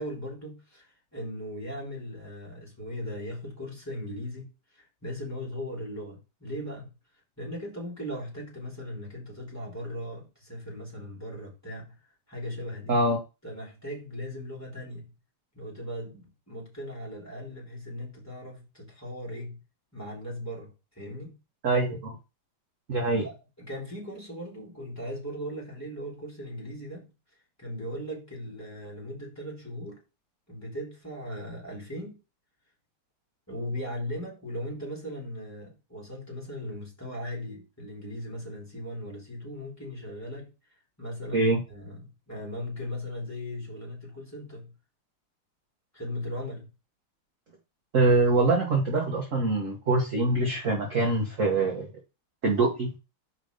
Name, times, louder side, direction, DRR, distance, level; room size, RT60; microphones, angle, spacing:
voice 1, 0.0-6.9 7.4-12.0 12.3-13.0 13.4-15.1 15.5-19.6 19.9-21.4 23.2-27.1 27.6-30.0 30.5-32.2 33.5-40.5 41.0-44.7 45.9-46.7, equal, 5° left, 3.4 m, -38 dB
voice 2, 12.9-13.2 21.6-22.2 22.9-23.3 41.3-41.6 47.9-51.9 52.4-52.9, right 2 dB, 40° right, 1.5 m, -24 dB
5.4 x 5.1 x 5.2 m
omnidirectional pair, 2.3 m